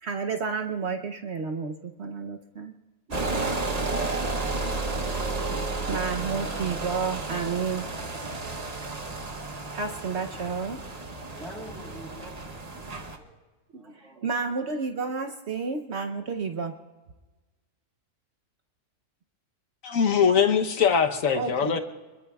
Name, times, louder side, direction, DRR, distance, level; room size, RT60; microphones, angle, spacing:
voice 1, 0.0-2.7 3.4-3.7 5.9-7.9 9.7-10.8 13.7-16.8 21.3-21.8, right 5 dB, 60° right, 1.0 m, -31 dB
sound 1, 3.1-13.2, right 3 dB, 35° right, 1.0 m, -32 dB
voice 2, 11.2-13.3 13.7-14.2, equal, ahead, 3.8 m, -46 dB
voice 3, 19.8-21.8, left 7 dB, 80° left, 1.3 m, -22 dB
27.0 x 22.5 x 2.3 m
omnidirectional pair, 1.4 m